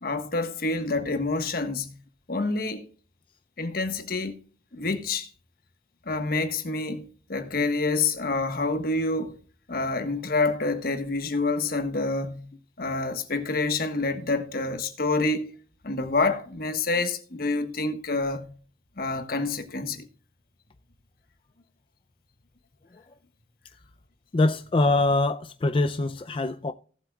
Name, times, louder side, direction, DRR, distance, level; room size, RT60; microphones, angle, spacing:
voice 1, 0.0-2.0 2.3-2.9 3.6-4.4 4.7-5.3 6.0-9.4 9.7-12.5 12.8-15.5 15.8-18.5 19.0-20.1, left 3 dB, 55° left, 1.4 m, -27 dB
voice 2, 24.3-26.7, left 2 dB, 30° left, 0.4 m, -24 dB
17.5 x 8.1 x 2.4 m
head